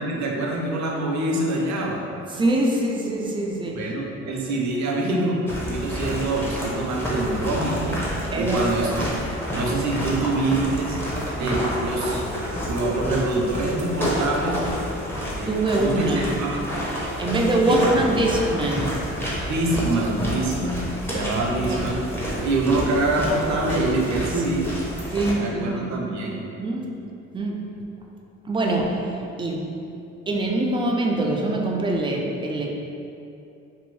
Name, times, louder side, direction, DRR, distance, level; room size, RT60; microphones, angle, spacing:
voice 1, 0.0-2.0 3.7-9.1 9.5-11.0 11.4-12.2 12.6-14.6 15.4-16.7 17.6-17.8 19.5-22.0 22.4-24.7 25.4-26.4, right 2 dB, 65° right, -1 dB, 0.6 m, -25 dB
voice 2, 2.3-3.8 6.1-6.2 8.3-8.6 15.5-16.2 17.2-19.0 21.5-21.9 24.2-24.3 25.1-25.9 26.6-27.0 27.3-27.7 28.4-29.7 30.3-32.7, right 2 dB, 15° right, 0 dB, 0.3 m, -24 dB
sound 1, 5.5-25.3, equal, 5° left, 0.7 m, -29 dB
2.6 x 2.6 x 3.1 m, 2.7 s
cardioid pair, 90°, 30 cm